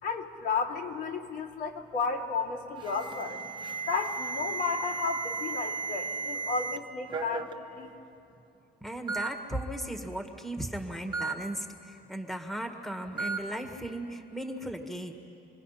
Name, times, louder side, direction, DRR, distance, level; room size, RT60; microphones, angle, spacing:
voice 1, 0.0-3.4 3.8-7.9, left 5 dB, 80° left, -3 dB, 2.8 m, -33 dB
Alarm, 2.8-6.8 7.1-7.5 8.4-8.5 9.1-9.3 11.1-11.3 13.2-13.4, right 4 dB, 30° right, 1.5 m, -34 dB
voice 2, 8.8-15.1, right 1 dB, ahead, 4 dB, 1.7 m, -36 dB
26.5 x 21.5 x 5.8 m, 2.7 s
cardioid pair, 110°, 17 cm